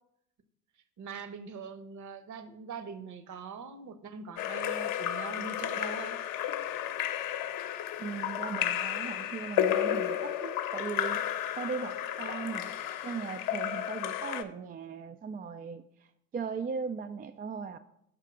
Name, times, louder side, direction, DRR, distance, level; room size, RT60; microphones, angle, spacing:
voice 1, 1.0-6.2, right 5 dB, 45° right, 12 dB, 1.0 m, -42 dB
Splash splatter / Drip / Trickle dribble, 4.4-14.4, left 11 dB, 50° left, 0.8 m, -32 dB
voice 2, 8.0-11.3 11.6-12.7 13.0-16.1 16.3-17.8, right 6 dB, 20° right, 9 dB, 0.3 m, -38 dB
5.6 x 4.8 x 6.1 m, 0.76 s
hypercardioid pair, 55°, 42 cm